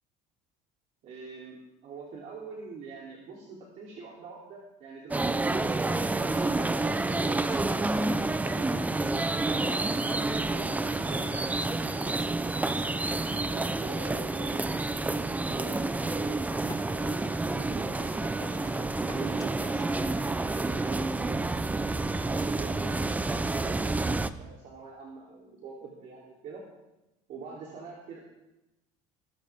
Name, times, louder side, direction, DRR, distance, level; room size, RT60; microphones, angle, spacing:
voice 1, 1.0-8.8 9.5-10.2 10.5-12.7 13.1-17.1 17.4-21.8 22.1-26.6 27.3-28.2, right 4 dB, 55° right, -3 dB, 3.2 m, -44 dB
sound 1, 5.1-24.3, right 2 dB, 10° right, 0.6 m, -29 dB
sound 2, 7.1-20.0, left 4 dB, 20° left, 1.5 m, -49 dB
21.0 x 14.0 x 3.6 m, 0.97 s
cardioid pair, 120°, 16 cm